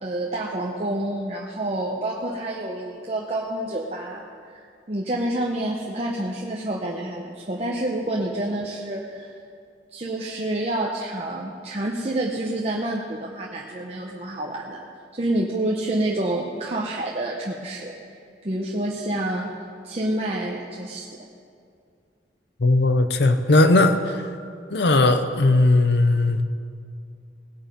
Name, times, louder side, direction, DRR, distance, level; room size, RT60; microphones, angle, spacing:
voice 1, 0.0-4.2 4.5-9.3 9.9-14.8 15.1-18.0 18.4-19.5 19.8-21.1, right 1 dB, 35° right, -1 dB, 0.9 m, -28 dB
voice 2, 22.6-24.2 24.7-26.5, left 2 dB, 65° left, 9 dB, 0.8 m, -18 dB
18.0 x 8.8 x 5.3 m, 2.3 s
head